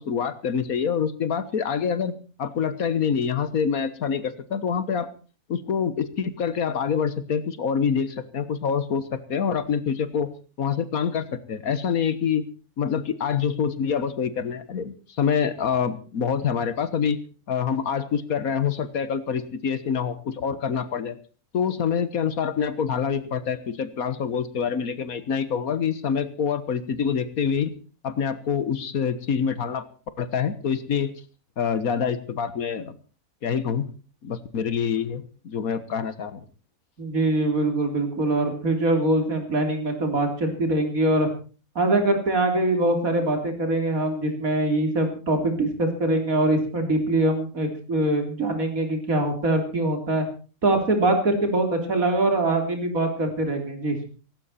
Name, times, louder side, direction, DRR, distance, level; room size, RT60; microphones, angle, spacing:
voice 1, 0.0-5.1 5.5-10.3 10.6-12.4 12.8-17.2 17.5-21.2 21.5-27.7 28.0-29.9 30.2-31.1 31.6-33.0 33.4-33.9 34.2-36.4, left 7 dB, 75° left, 14 dB, 1.7 m, -26 dB
voice 2, 37.0-41.3 41.8-50.2 50.6-54.0, right 2 dB, 70° right, 5 dB, 4.1 m, -23 dB
17.5 x 16.0 x 4.3 m, 0.38 s
omnidirectional pair, 1.5 m